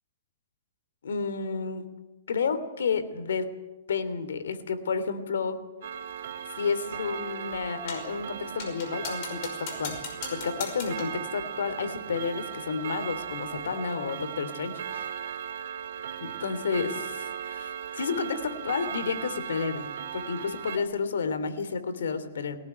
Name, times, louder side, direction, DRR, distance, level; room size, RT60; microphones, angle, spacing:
voice 1, 1.0-1.9 2.3-3.5 3.9-5.6 6.6-15.1 16.2-22.6, left 5 dB, 85° left, 11 dB, 3.1 m, -31 dB
Clock, 5.8-20.8, right 8 dB, 60° right, 2.7 m, -37 dB
sound 1, 7.9-8.2 8.6-11.2, left 6 dB, 40° left, 5.4 m, -39 dB
22.5 x 18.0 x 9.4 m, 1.1 s
hypercardioid pair, 165°, 0 cm